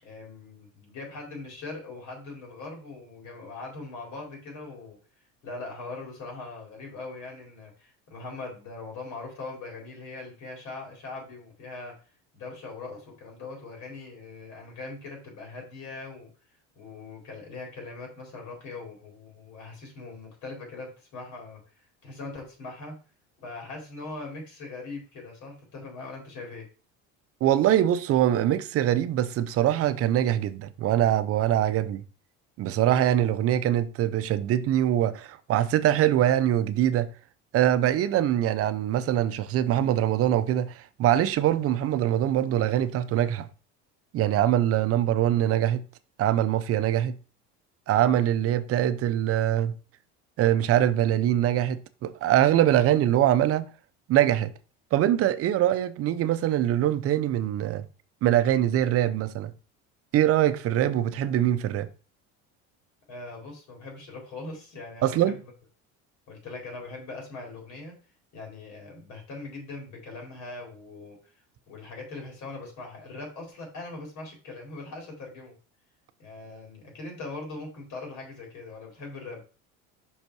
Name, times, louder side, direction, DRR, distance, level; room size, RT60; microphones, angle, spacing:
voice 1, 0.0-5.0 5.4-11.9 12.3-16.3 16.8-21.6 22.0-23.0 23.4-26.7 63.1-65.4 66.3-68.0 68.3-71.2 71.7-75.6 76.2-79.4, left 3 dB, 60° left, 4.1 m, -41 dB
voice 2, 27.4-32.0 32.6-37.1 37.5-43.5 44.1-45.8 46.2-47.2 47.9-49.8 50.4-53.7 54.1-54.5 54.9-57.9 58.2-59.5 60.1-61.9 65.0-65.3, right 11 dB, 45° right, 0.6 m, -23 dB
5.7 x 5.1 x 4.7 m
supercardioid pair, 115°, 33 cm